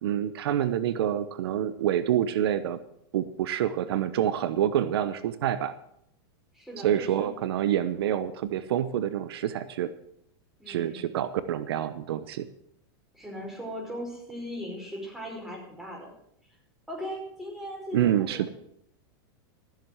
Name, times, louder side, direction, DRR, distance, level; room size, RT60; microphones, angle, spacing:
voice 1, 0.0-2.8 3.1-5.7 6.8-9.9 10.7-12.5 17.9-18.5, right 10 dB, 80° right, 14 dB, 0.9 m, -27 dB
voice 2, 6.5-7.3 10.6-11.1 13.1-16.1 16.9-18.5, equal, 5° right, -2 dB, 5.2 m, -38 dB
14.5 x 7.6 x 7.8 m, 0.72 s
supercardioid pair, 130°, 13 cm